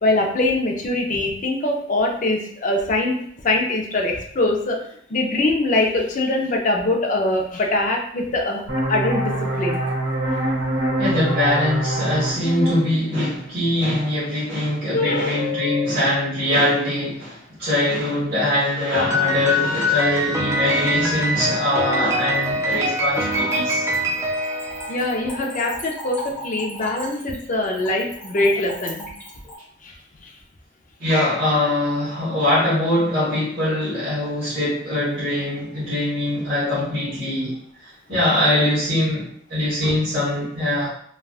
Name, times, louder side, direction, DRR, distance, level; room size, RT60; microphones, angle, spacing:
voice 1, 0.0-3.2 3.4-4.8 5.1-8.6 8.9-9.8 14.9-15.9 24.9-29.1 29.8-30.0 30.2-30.3 38.1-38.2 39.8-39.9, left 2 dB, 40° left, 1 dB, 0.5 m, -23 dB
sound 1, 8.7-14.1, right 1 dB, 75° right, 1.0 m, -25 dB
voice 2, 11.0-23.9 31.0-40.9, left 1 dB, 50° right, -12 dB, 1.1 m, -22 dB
Piano, 18.9-25.4, equal, 15° right, 0.4 m, -23 dB
Splash splatter / Trickle dribble, 22.2-29.6, equal, 10° left, 0.9 m, -37 dB
3.3 x 2.3 x 2.4 m, 0.65 s
head